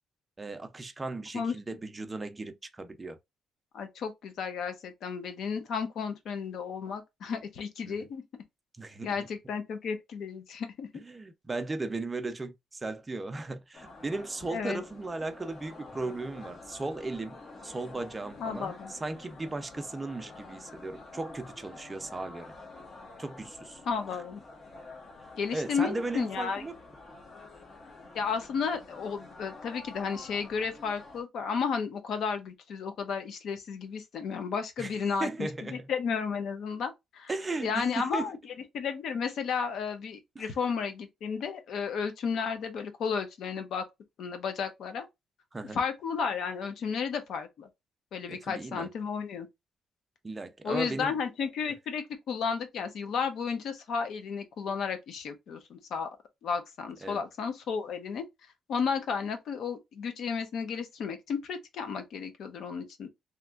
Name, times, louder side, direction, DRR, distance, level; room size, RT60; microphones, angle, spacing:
voice 1, 0.4-3.2 7.8-8.1 8.8-9.1 10.9-22.5 23.2-23.8 25.5-26.7 34.8-34.9 35.2-35.9 37.3-38.3 40.4-40.5 45.5-45.8 48.3-48.9 50.2-51.1 57.0-57.2, right 2 dB, 20° right, 0.5 m, -36 dB
voice 2, 3.7-8.2 9.0-10.9 14.5-14.8 18.4-18.9 23.9-24.4 25.4-26.6 28.1-37.3 37.6-38.4 38.7-43.8 44.2-45.1 45.7-47.7 48.1-49.5 50.6-56.1 56.4-58.2 58.7-63.1, left 6 dB, 70° left, 0.9 m, -33 dB
sound 1, 13.7-31.2, left 3 dB, 40° left, 1.2 m, -48 dB
3.2 x 2.9 x 2.4 m
cardioid pair, 135°, 0 cm